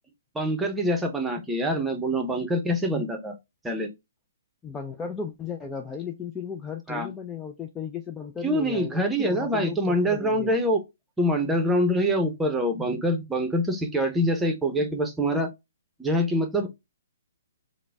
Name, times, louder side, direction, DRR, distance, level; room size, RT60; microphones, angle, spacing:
voice 1, 0.3-3.3 3.6-3.9 6.9-7.1 8.4-10.8 11.2-15.5 16.0-16.7, equal, 5° right, 0.8 m, -25 dB
voice 2, 4.6-10.5, left 6 dB, 10° left, 0.4 m, -35 dB
3.8 x 2.1 x 3.4 m
hypercardioid pair, 135°, 0 cm